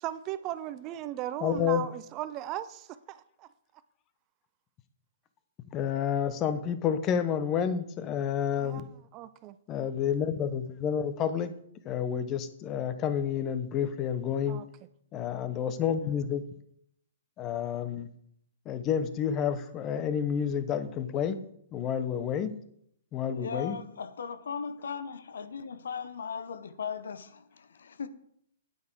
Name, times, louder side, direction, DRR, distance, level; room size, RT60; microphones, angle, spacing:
voice 1, 0.0-3.5 8.6-8.8 9.1-9.6 14.5-14.6, right 13 dB, 30° right, 0.5 m, -37 dB
voice 2, 1.4-1.9 5.7-8.9 9.7-11.5 11.8-14.6 15.1-16.4 17.4-18.1 18.6-21.4 21.7-22.6 23.1-23.8, left 8 dB, 30° left, 0.9 m, -29 dB
voice 3, 23.3-28.1, left 6 dB, 70° left, 0.8 m, -38 dB
9.3 x 8.3 x 4.6 m
hypercardioid pair, 125°, 0 cm